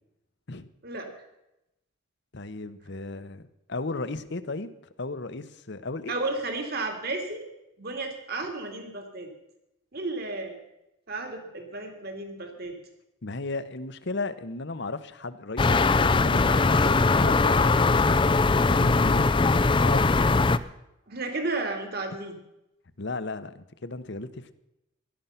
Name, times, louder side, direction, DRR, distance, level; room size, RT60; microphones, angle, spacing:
voice 1, 2.3-4.7 5.0-6.1 13.2-20.3 23.0-24.5, left 3 dB, 55° left, 13 dB, 0.9 m, -35 dB
voice 2, 6.1-7.5 7.8-9.3 9.9-10.6 11.1-12.8 21.1-22.4, right 2 dB, 50° right, 4 dB, 2.6 m, -33 dB
sound 1, 15.6-20.6, left 3 dB, 25° left, 0.4 m, -21 dB
16.5 x 12.0 x 5.8 m, 0.88 s
head